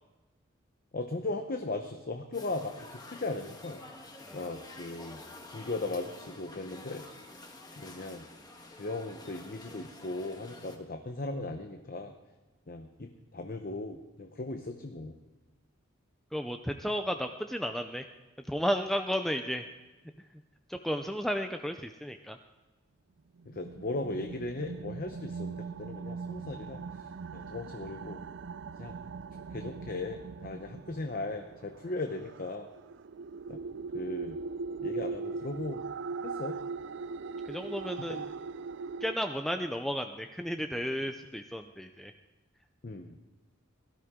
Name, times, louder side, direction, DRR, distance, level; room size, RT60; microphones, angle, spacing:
voice 1, 0.9-3.8 4.3-5.2 5.5-7.0 7.8-8.2 8.7-12.1 12.7-15.2 23.5-26.8 27.3-28.2 28.8-28.9 29.5-32.7 33.5-33.6 33.9-34.4 34.8-35.8 36.2-36.5 42.8-43.2, left 2 dB, 45° left, 5 dB, 0.8 m, -37 dB
sound 1, 2.3-10.8, left 2 dB, 20° left, 1.4 m, -49 dB
voice 2, 4.2-4.5 16.3-18.1 18.5-19.6 20.7-22.4 37.5-38.2 39.0-42.1, equal, ahead, 6 dB, 0.5 m, -33 dB
sound 2, 23.4-39.2, right 4 dB, 65° right, 0.4 m, -40 dB
17.5 x 12.5 x 3.7 m, 1.2 s
head